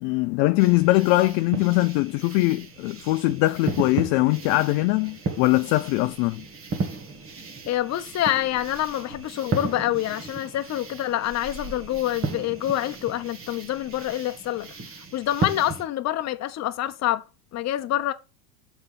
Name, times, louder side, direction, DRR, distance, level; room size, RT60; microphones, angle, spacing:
voice 1, 0.0-6.4, left 20 dB, 50° left, 0.5 m, -22 dB
sound 1, 0.6-15.9, right 3 dB, 25° right, 1.7 m, -35 dB
voice 2, 7.7-14.7 15.1-17.2 17.5-18.1, left 13 dB, 35° left, 0.9 m, -26 dB
6.6 x 4.6 x 5.6 m
hypercardioid pair, 105°, 48 cm